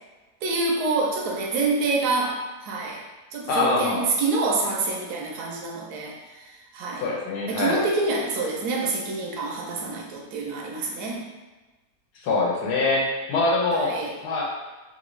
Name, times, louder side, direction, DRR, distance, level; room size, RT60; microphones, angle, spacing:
voice 1, 0.4-2.4 2.6-3.0 3.3-7.0 7.5-11.2 13.7-14.1, right 3 dB, 75° right, 0 dB, 1.1 m, -27 dB
voice 2, 3.5-4.1 7.0-7.8 12.2-14.0 14.2-14.4, left 3 dB, 75° left, -3 dB, 1.3 m, -24 dB
3.3 x 2.6 x 3.0 m, 1.2 s
omnidirectional pair, 1.8 m